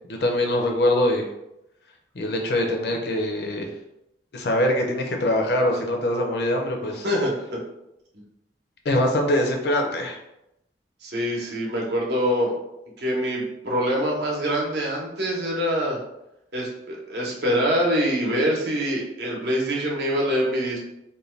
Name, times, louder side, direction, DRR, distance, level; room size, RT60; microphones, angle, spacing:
voice 1, 0.1-1.3 2.1-3.7 4.3-7.1 8.8-10.2, left 1 dB, 60° left, 2 dB, 0.5 m, -23 dB
voice 2, 7.0-7.6 11.0-12.5 13.0-16.0 16.5-20.8, equal, 65° right, -2 dB, 0.8 m, -24 dB
2.6 x 2.2 x 3.1 m, 0.85 s
head